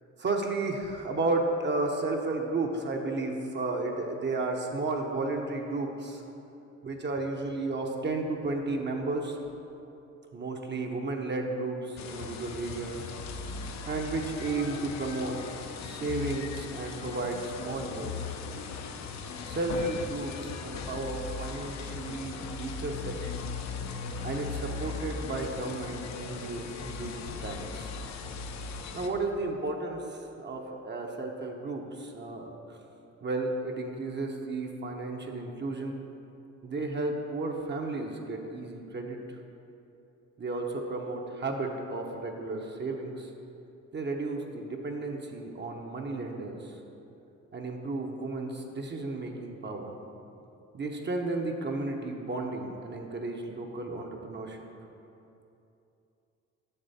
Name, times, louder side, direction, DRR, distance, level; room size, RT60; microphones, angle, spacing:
voice 1, 0.2-6.2 6.8-9.4 10.3-13.1 13.9-15.4 15.8-18.4 19.4-23.4 24.2-27.9 28.6-28.7 28.9-32.8 33.2-36.0 36.6-39.2 40.4-43.3 43.9-46.8 47.5-50.0 50.7-54.6, right 2 dB, 35° right, 2 dB, 0.7 m, -33 dB
sound 1, 12.0-29.1, left 5 dB, 65° left, 0.6 m, -38 dB
6.8 x 6.5 x 4.1 m, 2.8 s
cardioid pair, 90°, 30 cm